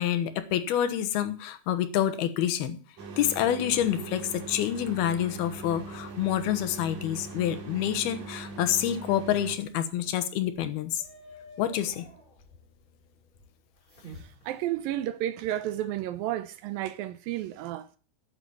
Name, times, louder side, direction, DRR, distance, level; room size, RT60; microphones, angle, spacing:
voice 1, 0.0-2.8 3.2-11.0 11.6-12.1, left 11 dB, 85° left, 3.1 m, -27 dB
sound 1, 3.0-9.6, right 3 dB, 55° right, 3.5 m, -41 dB
sound 2, 3.8-15.1, equal, 15° left, 6.0 m, -54 dB
voice 2, 14.2-18.0, right 13 dB, 75° right, 2.3 m, -32 dB
9.8 x 8.6 x 8.6 m
omnidirectional pair, 4.4 m